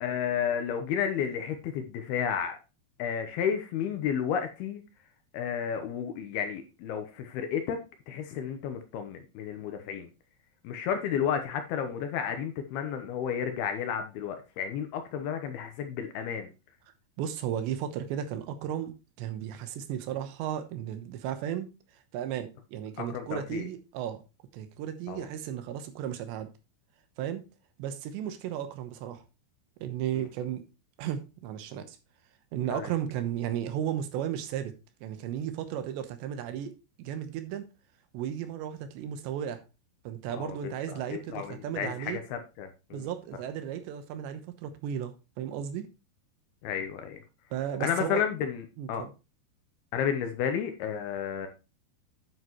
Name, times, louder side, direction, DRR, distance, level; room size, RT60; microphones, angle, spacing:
voice 1, 0.0-2.6 3.0-4.8 5.3-7.8 8.1-10.1 10.6-16.5 23.0-23.7 25.1-25.3 30.1-30.3 32.7-32.9 40.4-43.1 46.6-47.2 47.8-49.0 49.9-51.5, left 8 dB, 75° left, 2.5 m, -32 dB
voice 2, 17.2-21.7 22.1-24.2 24.5-26.5 27.2-27.4 27.8-29.2 29.8-30.6 31.0-32.0 32.5-34.7 35.0-36.7 37.0-37.7 38.1-39.6 40.0-42.2 42.9-45.8 47.5-48.2 48.8-49.1, right 10 dB, 80° right, 3.2 m, -34 dB
9.6 x 8.0 x 3.0 m
omnidirectional pair, 5.2 m